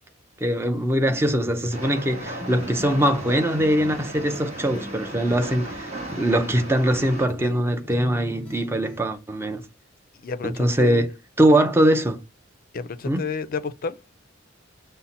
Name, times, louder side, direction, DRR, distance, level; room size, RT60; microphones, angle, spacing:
voice 1, 0.4-9.6 10.4-11.1 11.4-12.2 13.0-13.2, right 1 dB, 10° right, 0.5 m, -22 dB
sound 1, 0.9-9.0, left 2 dB, 5° left, 0.9 m, -41 dB
Train, 1.7-7.2, right 2 dB, 35° right, 1.4 m, -36 dB
voice 2, 10.1-11.1 12.7-14.0, left 5 dB, 45° left, 0.4 m, -31 dB
5.4 x 2.1 x 4.1 m
head